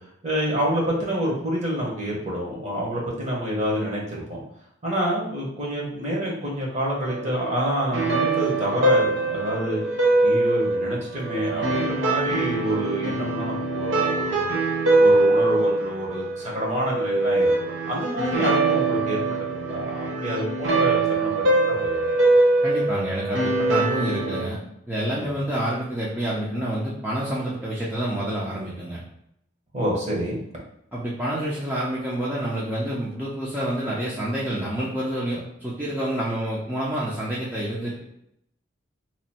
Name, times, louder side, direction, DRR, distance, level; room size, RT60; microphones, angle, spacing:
voice 1, 0.2-4.4 4.8-9.8 10.2-14.5 15.0-19.2 19.5-22.0 25.2-25.3 29.7-30.4, equal, 40° right, -4 dB, 1.2 m, -28 dB
sound 1, 7.0-24.4, right 2 dB, 80° right, 0.9 m, -23 dB
voice 2, 22.6-24.6 24.9-29.0 30.9-38.0, right 1 dB, 10° right, -7 dB, 0.6 m, -28 dB
3.0 x 2.6 x 4.2 m, 0.75 s
head